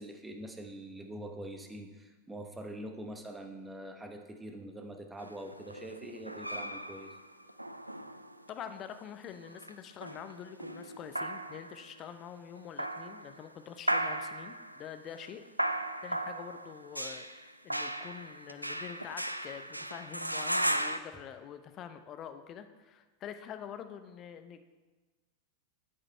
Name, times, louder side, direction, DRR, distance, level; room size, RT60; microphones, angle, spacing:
voice 1, 0.0-7.1, right 1 dB, 10° right, 5 dB, 1.1 m, -44 dB
sound 1, 5.2-8.7 9.3-11.9 12.6-13.4 13.9-21.0, right 1 dB, 85° right, 0.4 m, -36 dB
voice 2, 8.5-15.4 16.0-24.7, left 8 dB, 30° left, 9 dB, 0.7 m, -46 dB
10.0 x 7.9 x 4.4 m, 1.3 s
figure-of-eight pair, 90°, 0 cm